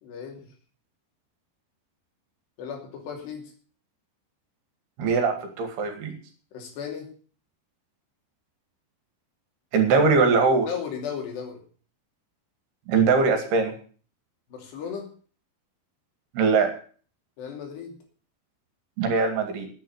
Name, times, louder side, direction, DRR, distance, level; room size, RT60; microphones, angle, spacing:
voice 1, 0.0-0.5 2.6-3.5 6.5-7.1 10.7-11.6 14.5-15.1 17.4-18.0, left 7 dB, 75° left, 2 dB, 5.0 m, -35 dB
voice 2, 5.0-6.1 9.7-10.7 12.9-13.7 16.3-16.7 19.0-19.7, right 4 dB, 70° right, 5 dB, 4.1 m, -21 dB
10.5 x 9.8 x 8.1 m, 0.42 s
omnidirectional pair, 5.0 m